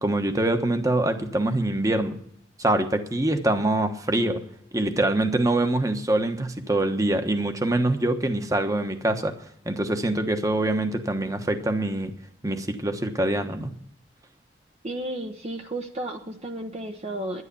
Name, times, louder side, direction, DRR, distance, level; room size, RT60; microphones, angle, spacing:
voice 1, 0.0-2.2 2.6-4.4 4.7-9.3 9.6-12.1 12.4-13.7, right 1 dB, 20° right, 7 dB, 1.2 m, -24 dB
voice 2, 14.8-17.4, right 1 dB, 35° right, 4 dB, 0.9 m, -33 dB
11.0 x 10.5 x 6.9 m, 0.68 s
head